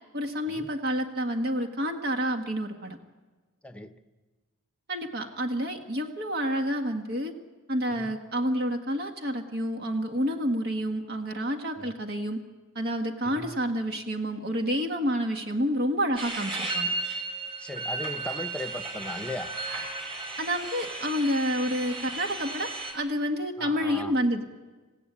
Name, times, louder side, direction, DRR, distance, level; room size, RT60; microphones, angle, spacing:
voice 1, 0.1-3.0 4.9-7.3 7.7-12.4 12.7-16.9 20.4-24.4, equal, 50° right, 4 dB, 1.6 m, -29 dB
voice 2, 3.6-3.9 7.9-8.1 11.8-12.0 13.2-13.5 17.6-19.5 23.6-24.1, left 1 dB, 5° left, 8 dB, 1.0 m, -38 dB
sound 1, 16.2-22.9, right 3 dB, 25° right, 5.3 m, -34 dB
28.0 x 16.0 x 8.6 m, 1.4 s
head